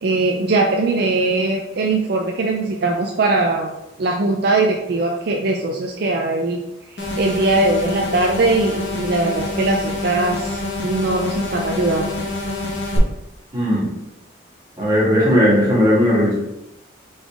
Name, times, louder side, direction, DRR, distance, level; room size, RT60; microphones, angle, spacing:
voice 1, 0.0-3.7 4.0-6.6 7.2-12.1, right 2 dB, 50° right, 1 dB, 0.4 m, -20 dB
sound 1, 7.0-13.0, left 2 dB, 55° left, 1.0 m, -27 dB
voice 2, 13.5-13.9 14.8-16.3, equal, 20° right, -8 dB, 1.7 m, -16 dB
3.9 x 3.8 x 3.5 m, 0.89 s
head